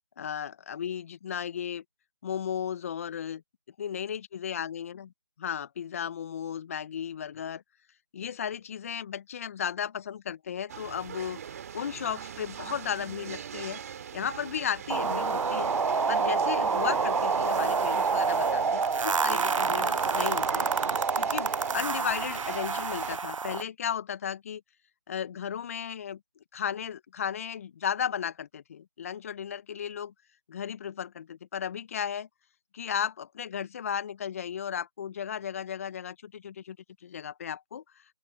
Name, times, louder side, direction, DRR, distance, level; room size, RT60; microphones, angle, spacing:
voice 1, 0.2-1.8 2.2-3.4 3.8-5.1 5.4-7.6 8.1-13.8 14.1-15.7 16.1-20.7 21.2-24.6 25.1-26.2 26.5-30.1 30.5-32.3 32.7-36.8 37.0-37.8, left 8 dB, 25° left, 1.5 m, -35 dB
sound 1, 10.7-23.2, right 8 dB, 30° right, 3.0 m, -41 dB
sound 2, 14.9-23.6, right 5 dB, 75° right, 0.4 m, -27 dB
open air
figure-of-eight pair, 155°, 17 cm